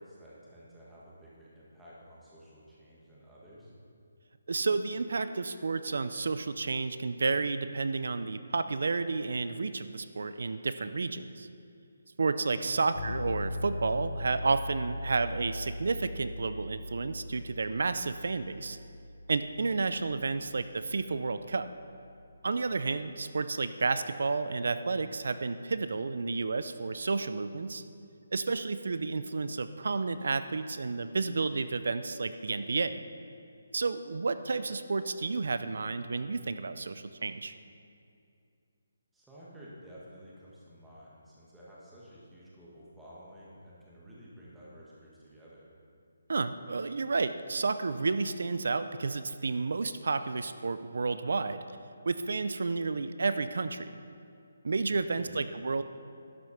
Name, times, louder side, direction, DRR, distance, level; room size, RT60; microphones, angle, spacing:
voice 1, 0.0-3.7 12.6-12.9 39.1-45.7 54.9-55.4, equal, 5° right, -8 dB, 1.4 m, -52 dB
voice 2, 4.5-11.5 12.2-18.8 19.3-21.7 22.4-27.8 28.3-33.0 33.7-37.5 46.3-51.6 52.0-54.0 54.6-55.8, right 4 dB, 60° right, 11 dB, 0.5 m, -31 dB
sound 1, 13.0-22.8, left 2 dB, 85° left, 1.5 m, -41 dB
11.5 x 7.9 x 5.7 m, 2.5 s
hypercardioid pair, 175°, 0 cm